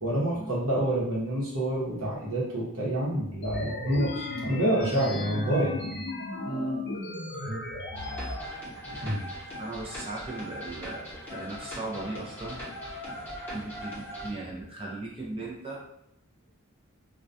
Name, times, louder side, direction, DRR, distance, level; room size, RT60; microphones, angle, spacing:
voice 1, 0.0-6.0 7.4-7.6 8.9-9.2, right 1 dB, 70° right, -4 dB, 0.9 m, -28 dB
sound 1, 3.4-8.4, left 2 dB, 55° left, 0.4 m, -35 dB
voice 2, 6.5-6.9 9.6-12.6 13.5-15.8, right 2 dB, 25° right, -3 dB, 0.4 m, -37 dB
sound 2, 7.9-14.3, equal, 10° left, 0.8 m, -40 dB
2.2 x 2.2 x 2.6 m, 0.77 s
head